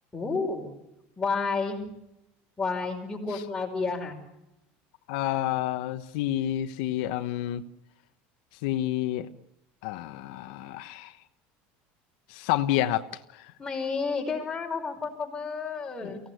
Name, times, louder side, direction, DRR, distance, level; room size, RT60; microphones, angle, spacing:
voice 1, 0.1-0.7 1.2-1.8 2.6-4.2 13.6-16.2, left 4 dB, 10° left, -1 dB, 5.2 m, -30 dB
voice 2, 5.1-7.6 8.6-9.3 9.8-11.1 12.3-13.0 13.3-13.5 16.0-16.2, left 13 dB, 75° left, 7 dB, 1.1 m, -29 dB
24.5 x 17.0 x 9.3 m, 0.89 s
cardioid pair, 160°, 5 cm